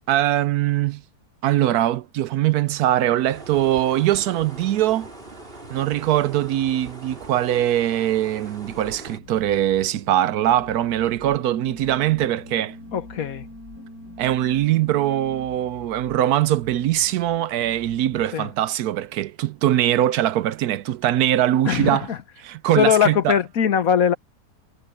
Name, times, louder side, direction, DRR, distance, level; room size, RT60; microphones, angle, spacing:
voice 1, 0.1-1.0 1.4-5.1 5.7-12.8 14.2-22.0 22.4-23.3, right 13 dB, 75° right, 1.1 m, -22 dB
sound 1, 3.3-9.2, right 2 dB, 35° right, 4.5 m, -41 dB
sound 2, 8.7-18.3, left 5 dB, 90° left, 2.1 m, -47 dB
sound 3, 10.3-15.4, equal, 10° right, 1.1 m, -43 dB
voice 2, 12.9-13.5 18.3-18.5 21.6-22.2 22.7-24.1, left 8 dB, 60° left, 1.4 m, -20 dB
omnidirectional pair, 1.7 m